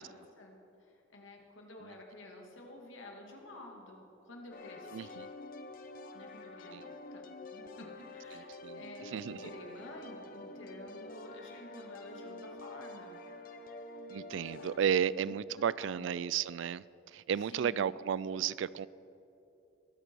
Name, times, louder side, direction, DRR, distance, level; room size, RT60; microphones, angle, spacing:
voice 1, 0.0-5.2 6.1-7.2 7.5-13.2 14.6-16.1 17.5-17.8, left 1 dB, 80° left, 1 dB, 2.1 m, -51 dB
sound 1, 4.5-14.8, left 2 dB, 45° left, 0.8 m, -48 dB
voice 2, 4.9-5.3 6.7-6.8 8.3-8.8 9.1-9.4 14.1-16.8 17.1-18.9, right 8 dB, 70° right, 20 dB, 0.3 m, -33 dB
22.0 x 8.0 x 4.5 m, 2.9 s
head